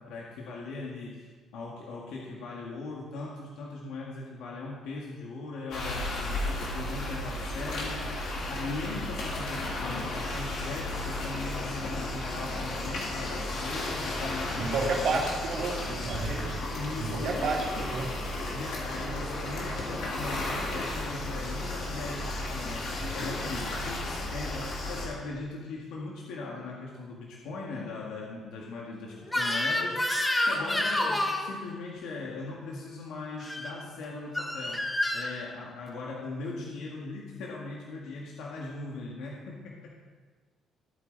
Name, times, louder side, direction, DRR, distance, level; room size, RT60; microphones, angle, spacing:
voice 1, 0.0-15.3 16.7-17.5 18.5-30.0 30.4-34.8 35.1-39.9, left 3 dB, 85° left, -3 dB, 2.0 m, -39 dB
sound 1, 5.7-25.1, left 1 dB, 65° left, 3.5 m, -34 dB
voice 2, 14.6-16.6 17.0-18.1, right 3 dB, 55° right, -1 dB, 2.4 m, -31 dB
Crying sobbing / Screech, 29.3-31.5 33.4-33.7 34.3-35.3, left 1 dB, 10° left, 1.3 m, -28 dB
15.5 x 9.1 x 4.1 m, 1.5 s
cardioid pair, 150°, 0 cm